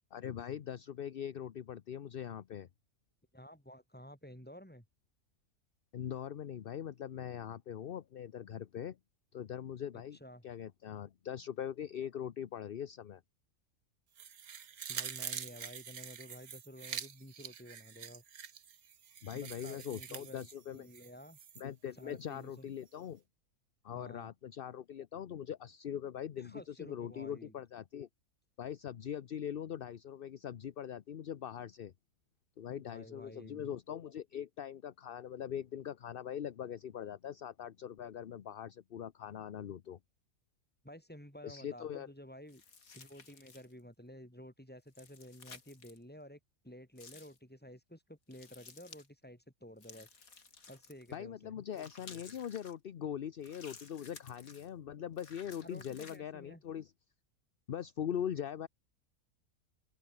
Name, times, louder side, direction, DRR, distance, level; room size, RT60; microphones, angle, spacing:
voice 1, 0.1-2.7 5.9-9.0 9.3-10.2 10.4-13.2 19.2-20.9 21.6-23.2 23.8-28.1 28.6-31.9 32.6-40.0 41.4-42.1 51.1-56.9 57.7-58.7, left 9 dB, 50° left, 0.7 m, -42 dB
voice 2, 3.3-4.9 10.2-10.4 14.9-18.2 19.3-21.4 21.9-22.7 23.9-24.3 26.4-27.5 32.7-33.8 40.8-42.6 42.9-46.4 46.6-50.1 50.7-51.6 55.6-56.6, equal, 5° left, 5.2 m, -52 dB
sound 1, 14.2-21.6 22.0-22.1, right 8 dB, 70° right, 1.8 m, -45 dB
sound 2, 42.5-43.8 44.9-46.0 47.0-47.4 48.3-49.1 49.8-51.1 51.7-52.7 53.4-54.7 55.2-56.2, left 4 dB, 65° left, 2.9 m, -55 dB
omnidirectional pair, 1.6 m